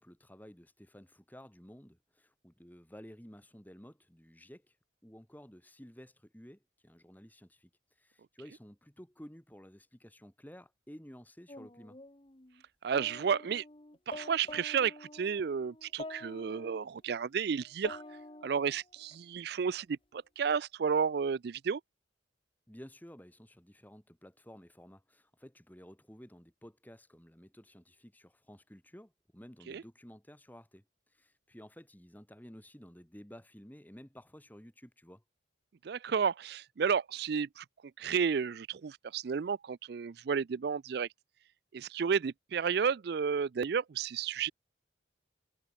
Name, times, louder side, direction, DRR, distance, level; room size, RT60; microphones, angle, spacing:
voice 1, 0.0-4.7 5.0-7.7 8.0-12.0 22.7-30.8 31.1-35.2, equal, 10° left, 1.8 m, -53 dB
sound 1, 11.5-12.6 12.9-16.9 17.6-19.2, left 2 dB, 25° left, 1.3 m, -48 dB
voice 2, 12.8-13.6 14.1-18.0 18.4-21.8 29.7-29.8 35.8-37.6 38.0-41.1 41.7-44.5, right 6 dB, 55° right, 0.4 m, -32 dB
head